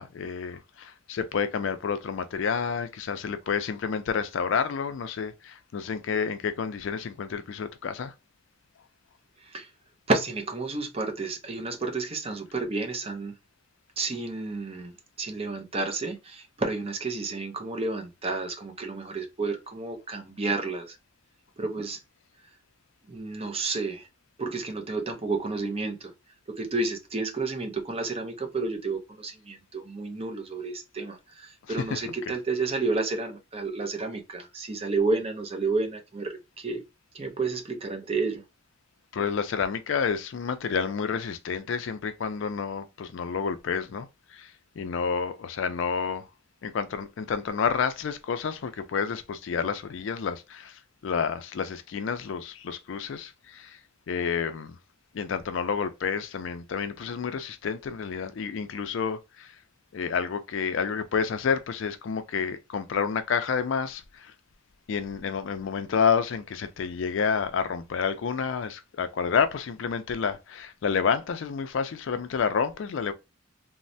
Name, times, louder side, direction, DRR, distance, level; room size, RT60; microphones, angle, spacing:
voice 1, 0.0-8.1 31.7-32.3 39.1-46.3 46.6-53.8 54.1-54.8 55.1-59.6 59.9-64.3 64.9-73.1, left 6 dB, 60° left, 0.4 m, -29 dB
voice 2, 9.4-9.7 10.1-13.3 14.0-21.0 21.6-22.0 23.1-24.1 24.4-26.1 26.5-36.8 37.1-38.4, right 3 dB, 30° right, 0.6 m, -31 dB
3.1 x 2.0 x 2.6 m
head